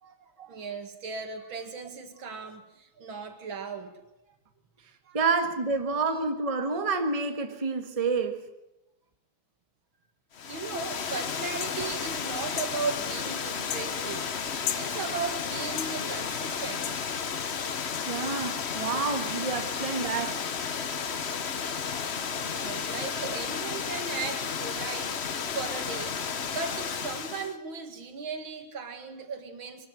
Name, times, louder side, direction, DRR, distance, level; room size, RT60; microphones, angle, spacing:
voice 1, 0.0-4.0 5.0-5.2 10.5-14.3 14.7-16.9 22.5-29.9, right 4 dB, 75° right, 6 dB, 2.7 m, -37 dB
voice 2, 5.1-8.5 18.1-20.5, right 4 dB, 20° right, 5 dB, 1.4 m, -29 dB
Water, 10.3-27.5, left 6 dB, 45° left, 0.9 m, -33 dB
sound 1, 11.6-11.8 12.6-12.8 13.7-13.9 14.7-14.9 15.8-15.9 16.8-17.0 17.9-18.0, left 10 dB, 80° left, 1.7 m, -34 dB
22.5 x 13.0 x 9.2 m, 0.93 s
omnidirectional pair, 2.2 m